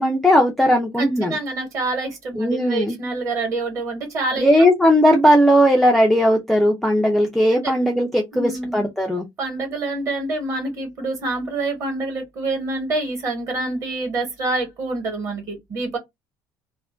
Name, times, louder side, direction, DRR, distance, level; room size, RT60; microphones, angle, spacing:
voice 1, 0.0-1.3 2.4-3.0 4.4-9.3, equal, ahead, 0.3 m, -17 dB
voice 2, 1.0-4.7 7.5-7.7 8.3-8.9 9.4-16.0, right 2 dB, 35° right, 1.1 m, -27 dB
2.4 x 2.1 x 3.2 m
cardioid pair, 180°, 9 cm